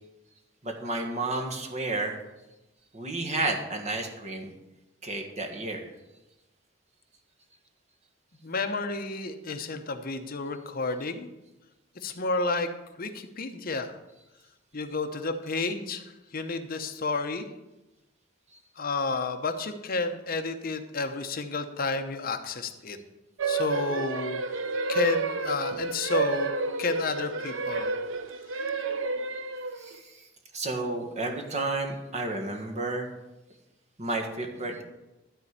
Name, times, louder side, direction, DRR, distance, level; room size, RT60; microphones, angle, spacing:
voice 1, 0.6-2.2 2.9-4.5 5.0-5.9 18.5-18.6 29.8-30.3 30.5-33.1 34.0-34.8, right 2 dB, 35° right, 2 dB, 1.5 m, -31 dB
voice 2, 8.4-11.3 12.0-12.7 13.0-13.9 14.7-16.0 16.3-17.4 18.8-23.0 23.4-24.4 24.9-26.5 26.8-27.9, left 3 dB, 50° left, 7 dB, 0.9 m, -31 dB
sound 1, 23.4-30.0, right 3 dB, 75° right, 0.8 m, -30 dB
12.5 x 4.3 x 8.2 m, 0.99 s
head